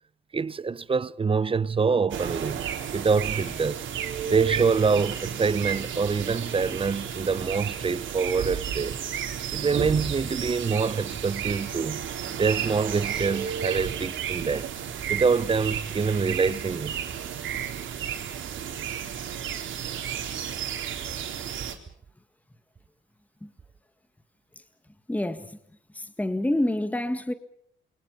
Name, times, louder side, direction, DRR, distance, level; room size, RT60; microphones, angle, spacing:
voice 1, 0.3-2.6 2.9-3.9 4.3-9.0 9.5-12.1 12.4-14.6 15.1-17.0, right 5 dB, 25° right, 0.9 m, -25 dB
sound 1, 2.1-21.8, right 9 dB, 75° right, 3.9 m, -32 dB
voice 2, 25.1-25.6 25.9-27.3, left 1 dB, 5° left, 1.7 m, -27 dB
28.5 x 23.5 x 5.6 m
cardioid pair, 90°, 20 cm